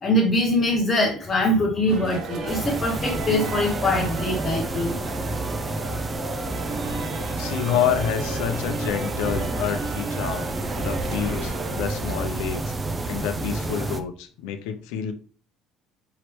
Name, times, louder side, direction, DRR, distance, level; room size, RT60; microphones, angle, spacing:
voice 1, 0.0-5.0 6.8-7.5, left 1 dB, 25° left, 0 dB, 0.9 m, -23 dB
sound 1, 1.9-12.3, right 3 dB, 50° right, 0.7 m, -35 dB
sound 2, 2.5-14.0, right 2 dB, 20° right, 0.5 m, -29 dB
voice 2, 7.4-10.5 10.8-12.7 13.1-15.1, left 9 dB, 90° left, 8 dB, 0.6 m, -28 dB
4.8 x 3.1 x 3.1 m, 0.39 s
cardioid pair, 125°, 0 cm